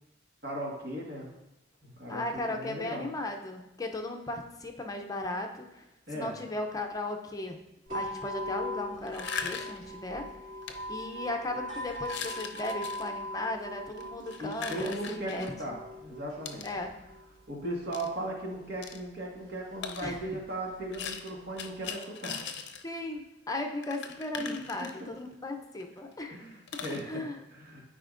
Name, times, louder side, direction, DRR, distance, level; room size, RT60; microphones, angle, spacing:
voice 1, 0.4-1.3 1.8-3.1 6.1-6.4 14.4-16.6 17.5-22.6 24.4-24.5 24.8-25.1 26.3-27.2 27.5-27.8, right 1 dB, 60° right, -2 dB, 1.7 m, -37 dB
voice 2, 2.1-5.9 6.1-7.6 7.9-10.3 10.9-15.5 16.6-16.9 20.0-20.2 22.8-26.4 27.0-27.4, left 2 dB, 20° left, 3 dB, 0.6 m, -36 dB
sound 1, 7.9-21.9, equal, 45° right, 2.9 m, -42 dB
sound 2, 9.1-9.9 10.6-10.7 11.3-11.5 12.0-13.1 13.9-15.5 16.5-16.7 17.9-18.1 18.8-19.0 19.8-20.1 20.9-22.8 23.2-23.3 23.5-23.6 23.8-25.3 25.8-25.9 26.1-26.2 26.7-27.0, left 6 dB, 65° left, 0.6 m, -39 dB
12.5 x 4.9 x 2.5 m, 0.90 s
head